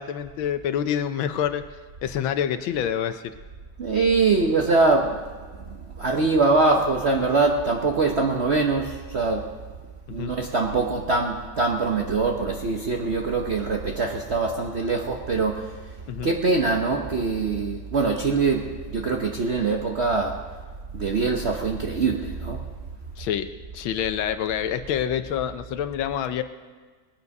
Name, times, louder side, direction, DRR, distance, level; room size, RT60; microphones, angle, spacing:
voice 1, 0.0-1.6 2.0-3.2 10.1-10.3 16.1-16.3 23.2-23.5 23.7-26.4, left 9 dB, 80° left, 10 dB, 1.5 m, -27 dB
voice 2, 3.8-9.6 10.1-16.0 16.2-20.6 20.9-22.7, right 3 dB, 50° right, 2 dB, 0.8 m, -23 dB
20.0 x 9.6 x 5.3 m, 1.5 s
omnidirectional pair, 2.2 m